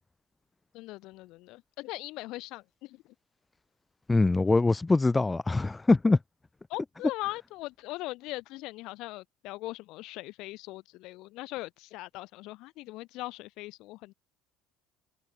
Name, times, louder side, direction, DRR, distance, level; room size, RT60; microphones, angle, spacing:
voice 1, 0.7-3.0 6.7-14.1, left 19 dB, 65° left, 2.5 m, -40 dB
voice 2, 4.1-6.2, left 3 dB, 15° left, 2.2 m, -23 dB
supercardioid pair, 115°, 0 cm